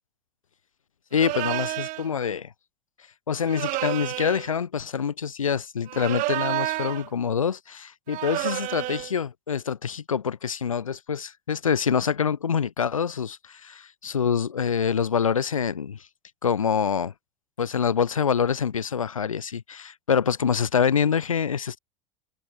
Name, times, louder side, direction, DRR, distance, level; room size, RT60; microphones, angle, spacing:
voice 1, 1.1-2.5 3.3-16.1 16.4-17.1 17.6-21.8, left 7 dB, 85° left, 3.6 m, -26 dB
sound 1, 1.1-2.1 3.5-4.5 5.9-7.1 8.1-9.1, right 20 dB, 50° right, 5.8 m, -30 dB
hypercardioid pair, 85°, 17 cm